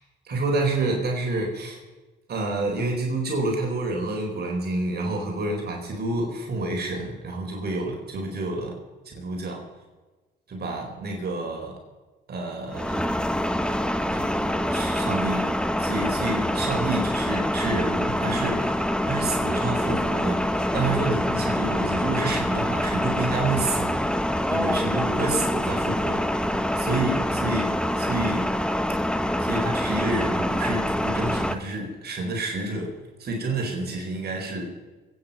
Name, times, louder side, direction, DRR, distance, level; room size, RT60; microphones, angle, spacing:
voice 1, 0.3-1.8 2.3-8.8 9.1-9.6 10.5-11.7 12.3-13.0 14.1-15.5 15.8-28.4 29.4-32.9 33.2-34.7, right 2 dB, 55° right, 1 dB, 4.3 m, -29 dB
sound 1, 12.7-31.6, left 1 dB, 5° left, 1.1 m, -25 dB
24.0 x 9.5 x 5.5 m, 1.2 s
cardioid pair, 90°, 20 cm